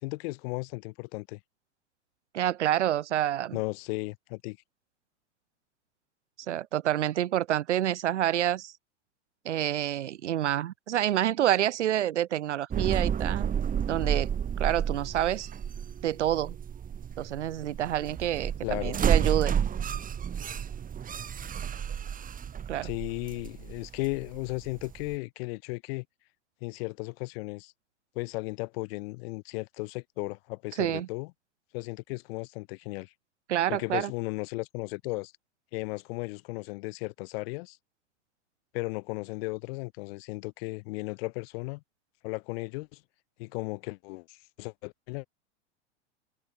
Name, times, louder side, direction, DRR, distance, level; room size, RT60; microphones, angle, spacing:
voice 1, 0.0-1.4 3.5-4.6 18.6-19.0 22.8-26.0 26.6-27.7 28.1-31.3 31.7-33.1 33.7-35.3 35.7-37.8 38.7-41.8 42.2-43.0 43.4-45.3, left 26 dB, 55° left, 3.1 m, -35 dB
voice 2, 2.3-3.6 6.5-8.7 9.4-13.5 13.9-14.3 14.6-15.5 16.0-16.6 17.2-19.5 22.7-22.9 30.8-31.1 33.5-34.1, right 12 dB, 75° right, 4.3 m, -28 dB
sound 1, 12.7-25.1, right 8 dB, 25° right, 3.4 m, -31 dB
hypercardioid pair, 110°, 35 cm